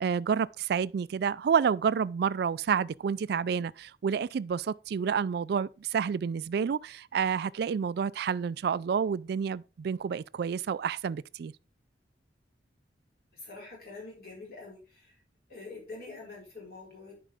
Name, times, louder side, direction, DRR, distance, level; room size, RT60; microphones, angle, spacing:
voice 1, 0.0-11.5, right 7 dB, 60° right, 0.3 m, -29 dB
voice 2, 13.3-15.2 15.5-17.1, left 3 dB, 60° left, 4.2 m, -45 dB
10.0 x 5.1 x 3.5 m
head